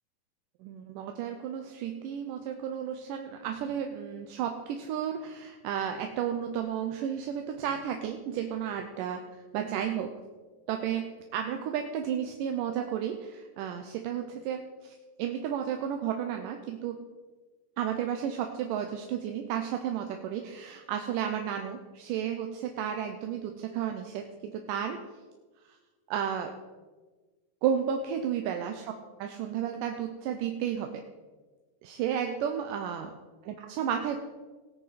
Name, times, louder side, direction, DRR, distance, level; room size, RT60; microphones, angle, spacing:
voice 1, 0.6-9.2 9.5-10.2 10.7-17.0 17.8-25.0 26.1-26.5 27.6-28.8 29.2-31.0 31.8-33.1 33.5-34.2, right 9 dB, 80° right, 5 dB, 2.3 m, -32 dB
18.5 x 8.5 x 4.1 m, 1.3 s
omnidirectional pair, 3.9 m